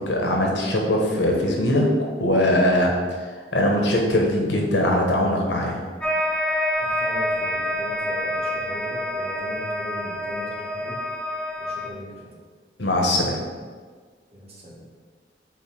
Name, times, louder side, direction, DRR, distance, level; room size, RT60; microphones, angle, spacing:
voice 1, 0.0-1.8 2.2-2.9 3.5-5.8 12.8-13.4, left 1 dB, 85° left, 0 dB, 1.2 m, -21 dB
sound 1, 6.0-11.9, left 1 dB, 5° left, 0.5 m, -27 dB
voice 2, 6.8-11.0 11.6-12.3 14.3-14.8, equal, 35° right, -4 dB, 1.5 m, -39 dB
4.8 x 4.0 x 5.5 m, 1.5 s
head